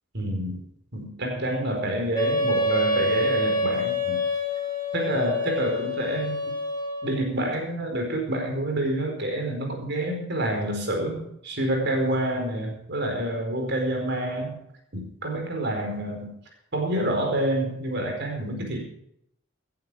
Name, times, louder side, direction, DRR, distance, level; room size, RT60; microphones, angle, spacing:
voice 1, 0.1-0.6 0.9-4.2 4.9-6.5 7.0-14.6 14.9-16.3 16.7-18.8, right 1 dB, 60° right, 3 dB, 4.6 m, -28 dB
Wind instrument woodwind instrument, 2.1-7.2, left 1 dB, 20° left, 4.4 m, -26 dB
17.5 x 11.0 x 4.9 m, 0.73 s
head